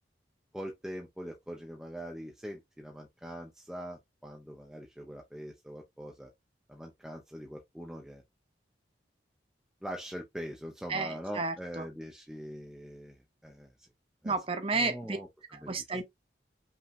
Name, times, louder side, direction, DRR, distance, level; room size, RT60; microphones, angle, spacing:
voice 1, 0.5-6.3 6.7-8.2 9.8-13.7 14.2-14.4 14.7-15.8, equal, 5° right, 0.8 m, -43 dB
voice 2, 10.9-11.8 14.2-15.2 15.7-16.0, right 3 dB, 30° right, 0.9 m, -32 dB
5.8 x 3.1 x 2.6 m
head